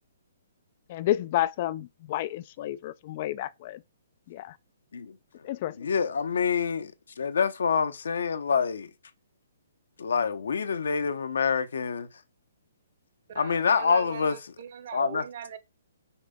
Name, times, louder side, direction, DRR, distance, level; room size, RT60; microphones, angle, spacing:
voice 1, 0.9-3.8 4.3-4.5 5.4-5.7, left 14 dB, 40° left, 0.4 m, -30 dB
voice 2, 5.8-6.9 7.2-8.9 10.0-12.1 13.3-14.4 14.9-15.2, left 6 dB, 75° left, 1.0 m, -26 dB
voice 3, 13.3-15.6, right 8 dB, 55° right, 1.4 m, -40 dB
6.0 x 5.1 x 3.8 m
hypercardioid pair, 135°, 0 cm